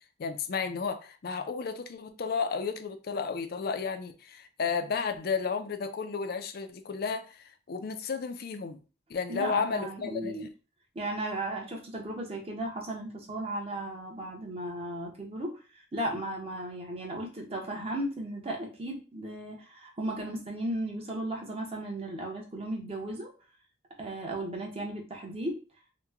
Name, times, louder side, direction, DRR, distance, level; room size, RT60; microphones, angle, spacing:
voice 1, 0.2-8.8 9.1-10.5, left 5 dB, 55° left, 0.4 m, -33 dB
voice 2, 9.3-10.5 10.9-23.3 24.0-25.6, right 1 dB, 30° right, 0.8 m, -35 dB
2.9 x 2.2 x 3.5 m
head